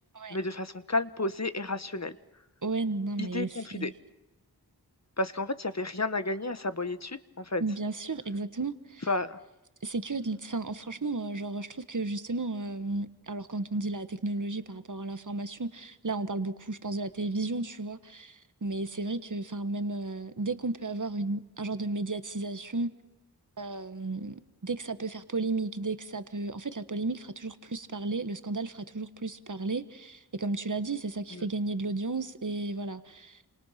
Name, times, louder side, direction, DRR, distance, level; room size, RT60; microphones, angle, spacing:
voice 1, 0.3-2.2 3.2-3.9 5.2-7.6 9.1-9.4 31.3-31.4, left 2 dB, 40° left, 12 dB, 1.4 m, -32 dB
voice 2, 2.6-3.9 7.6-9.0 9.8-22.9 23.6-33.4, right 3 dB, 50° right, 11 dB, 1.5 m, -33 dB
29.0 x 27.0 x 5.9 m, 1.0 s
wide cardioid pair, 45°, 40 cm